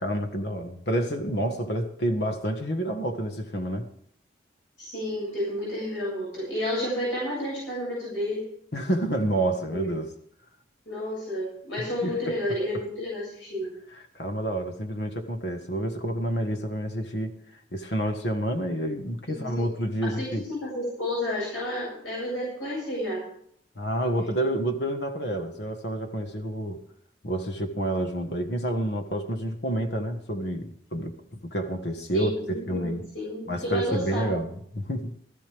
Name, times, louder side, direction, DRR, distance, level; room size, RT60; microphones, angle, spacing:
voice 1, 0.0-3.9 8.7-10.1 11.8-12.4 12.7-12.8 14.1-17.4 17.7-20.5 23.7-26.8 27.2-33.1 33.5-35.2, right 1 dB, 60° left, 1.7 m, -29 dB
voice 2, 4.8-8.4 9.7-9.9 10.9-13.7 19.3-19.7 20.0-23.2 32.1-34.3, left 1 dB, 90° left, 7.4 m, -31 dB
17.0 x 14.5 x 3.6 m
head